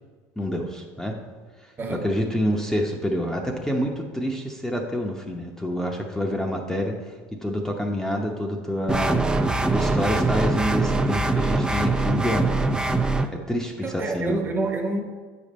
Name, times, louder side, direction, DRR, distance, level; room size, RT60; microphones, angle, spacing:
voice 1, 0.4-1.2 1.9-7.0 7.3-9.2 9.7-12.5 13.3-14.4, equal, 5° left, 0 dB, 0.8 m, -27 dB
sound 1, 8.9-13.3, right 2 dB, 10° right, 0.5 m, -23 dB
voice 2, 13.8-15.0, right 2 dB, 30° right, 3 dB, 1.2 m, -27 dB
8.2 x 5.2 x 4.2 m, 1.5 s
supercardioid pair, 95°, 8 cm